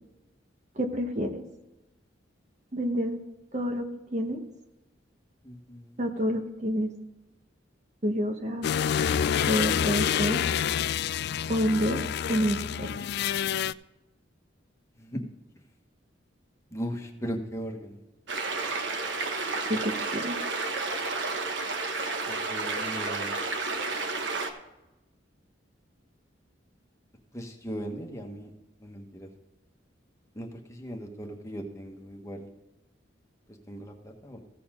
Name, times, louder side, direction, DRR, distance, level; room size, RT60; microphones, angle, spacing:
voice 1, 0.8-1.4 2.7-3.2 3.5-3.8 4.1-4.4 6.0-6.9 8.0-8.7 9.5-10.4 11.5-12.0 12.3-13.1 19.7-20.4, equal, 40° right, 5 dB, 1.2 m, -28 dB
voice 2, 5.4-6.0 15.0-15.2 16.7-18.0 22.3-23.3 27.3-28.5 28.8-29.3 30.3-32.5 33.5-34.4, equal, 15° left, 2 dB, 1.4 m, -38 dB
sound 1, 8.6-13.7, left 8 dB, 60° left, 0.3 m, -27 dB
sound 2, 18.3-24.5, right 3 dB, 75° right, 1.2 m, -31 dB
15.5 x 7.0 x 3.7 m, 1.0 s
head